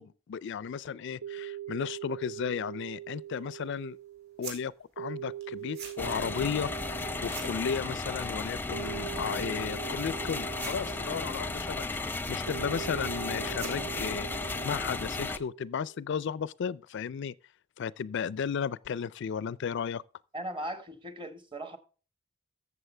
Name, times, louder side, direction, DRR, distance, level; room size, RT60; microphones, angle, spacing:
voice 1, 0.0-4.0 4.4-17.3 17.8-20.0, left 7 dB, 60° left, 0.4 m, -34 dB
sound 1, 0.6-16.0, right 12 dB, 85° right, 0.6 m, -43 dB
sound 2, 2.6-14.2, right 5 dB, 55° right, 5.4 m, -51 dB
sound 3, 6.0-15.4, left 3 dB, 10° left, 0.6 m, -35 dB
voice 2, 20.3-21.8, right 1 dB, 25° right, 1.4 m, -38 dB
14.5 x 7.1 x 3.3 m
head